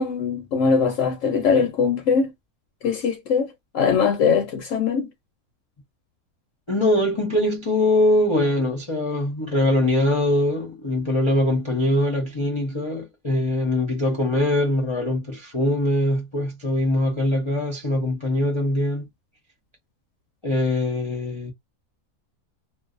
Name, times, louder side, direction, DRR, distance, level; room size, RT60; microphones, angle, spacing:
voice 1, 0.0-2.3 2.8-3.5 3.7-5.1, left 5 dB, 70° left, 0.9 m, -21 dB
voice 2, 6.7-19.1 20.4-21.5, left 1 dB, 30° left, 0.5 m, -22 dB
2.6 x 2.2 x 2.4 m
omnidirectional pair, 1.5 m